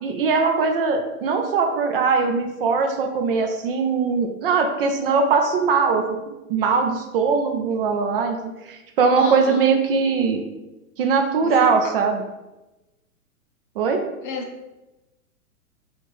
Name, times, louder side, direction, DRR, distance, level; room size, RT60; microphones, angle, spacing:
voice 1, 0.0-6.2 6.5-10.4 11.0-12.2 13.8-14.0, right 5 dB, 40° right, 4 dB, 0.4 m, -21 dB
voice 2, 9.2-9.6 11.4-11.6 14.2-14.4, left 4 dB, 35° left, 3 dB, 0.4 m, -31 dB
4.3 x 2.4 x 3.0 m, 1.0 s
hypercardioid pair, 120°, 44 cm